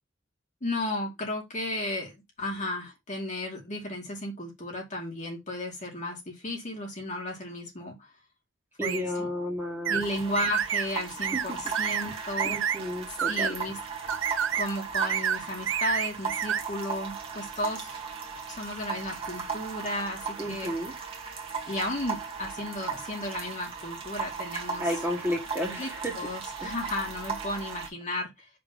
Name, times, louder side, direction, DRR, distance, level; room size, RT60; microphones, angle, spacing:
voice 1, 0.6-8.1 8.8-9.3 9.9-12.5 13.3-13.8 14.5-18.0 18.5-20.7 21.7-24.9 25.8-28.5, left 1 dB, 35° left, 2.4 m, -34 dB
voice 2, 8.8-10.0 11.3-11.4 12.4-13.5 20.4-20.9 24.8-26.1 26.6-26.7, equal, 10° right, 1.9 m, -32 dB
sound 1, 8.8-9.0 9.9-10.0 10.4-10.9 11.2-11.5 11.7-12.1 12.4-12.8 13.2-13.5 14.1-14.7 14.9-15.4 15.7-16.6, right 8 dB, 65° right, 0.6 m, -28 dB
sound 2, 10.0-27.9, right 5 dB, 30° right, 1.7 m, -37 dB
5.3 x 3.5 x 5.4 m
head